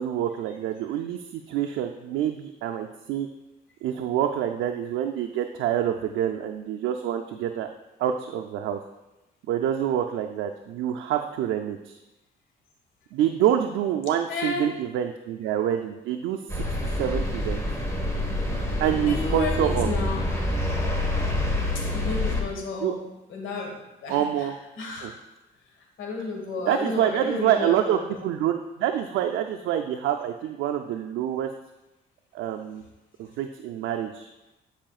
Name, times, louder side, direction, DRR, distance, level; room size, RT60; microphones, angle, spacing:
voice 1, 0.0-3.3 3.8-7.7 8.0-8.8 9.5-12.0 13.1-17.6 18.8-19.9 22.8-22.9 24.1-24.6 25.0-25.1 26.7-31.5 32.3-32.8 33.2-34.3, right 10 dB, 85° right, 4 dB, 0.4 m, -27 dB
voice 2, 14.3-14.8 18.9-20.3 21.7-24.5 24.8-25.1 26.0-28.2, left 3 dB, 75° left, 1 dB, 1.6 m, -32 dB
sound 1, 16.5-22.4, left 1 dB, 15° left, 1.3 m, -27 dB
10.5 x 4.9 x 2.4 m, 0.99 s
cardioid pair, 90°, 20 cm